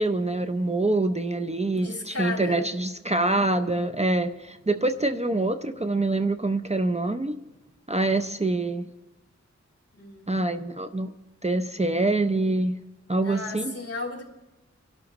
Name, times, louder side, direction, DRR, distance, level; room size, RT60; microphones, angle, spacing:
voice 1, 0.0-7.4 7.9-8.9 10.3-11.1 11.4-12.8 13.1-13.7, right 2 dB, 20° right, 7 dB, 0.6 m, -25 dB
voice 2, 1.8-2.7 10.0-10.3 13.2-14.2, left 3 dB, 55° left, -1 dB, 3.4 m, -34 dB
24.5 x 12.0 x 3.1 m, 1.0 s
wide cardioid pair, 60°, 29 cm